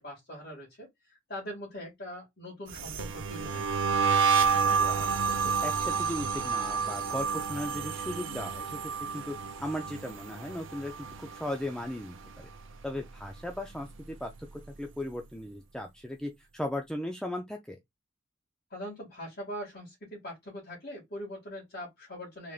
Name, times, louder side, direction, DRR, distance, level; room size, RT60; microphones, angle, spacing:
voice 1, 0.0-3.8 18.7-22.5, equal, 50° left, 1.9 m, -42 dB
sound 1, 2.7-11.9 12.1-12.6 12.9-14.5, right 6 dB, 70° right, 0.6 m, -30 dB
voice 2, 4.7-5.2 5.4-8.8 9.1-12.5 12.8-17.8, left 1 dB, 5° left, 0.4 m, -37 dB
3.7 x 3.4 x 2.4 m
head